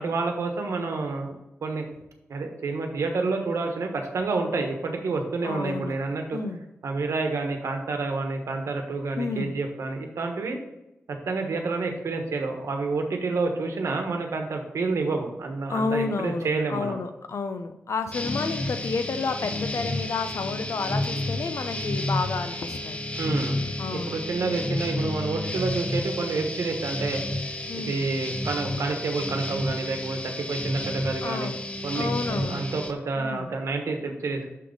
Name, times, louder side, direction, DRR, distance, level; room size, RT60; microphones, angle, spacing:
voice 1, 0.0-1.9 2.3-6.4 6.8-10.6 11.2-16.9 23.2-23.6 23.9-27.2 27.7-31.5 31.8-34.5, right 3 dB, 80° right, 4 dB, 1.1 m, -29 dB
voice 2, 5.4-6.0 6.3-6.6 9.2-9.5 15.7-23.0 23.8-24.2 27.7-28.0 31.2-31.6 31.9-32.6 33.2-33.5, left 4 dB, 70° left, 9 dB, 0.6 m, -30 dB
sound 1, 18.1-32.9, left 1 dB, 25° left, 0.8 m, -31 dB
6.4 x 3.9 x 5.1 m, 0.91 s
cardioid pair, 60°, 5 cm